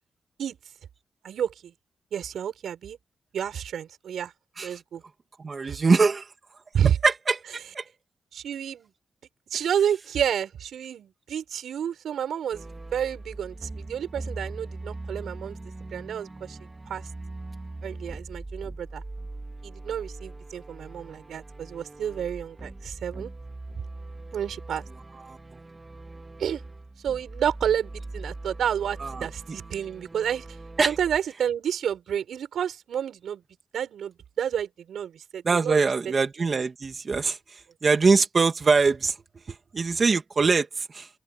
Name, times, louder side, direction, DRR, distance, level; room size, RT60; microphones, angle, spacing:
voice 1, 1.2-1.7 2.1-3.0 3.3-4.3 4.6-5.0 5.6-5.8 6.7-7.0 8.3-8.9 9.5-15.6 15.9-17.1 17.8-19.0 19.6-23.3 24.3-24.8 26.4-26.6 27.0-30.5 30.9-33.4 33.7-35.8, right 9 dB, 80° right, 7.4 m, -30 dB
voice 2, 5.4-6.3 7.0-7.4 7.7-7.9 25.3-25.4 29.0-29.6 30.8-30.9 35.4-39.2 39.5-41.1, right 4 dB, 35° right, 2.7 m, -23 dB
sound 1, 12.5-31.2, right 2 dB, 20° right, 2.6 m, -41 dB
open air
wide cardioid pair, 130°, 0 cm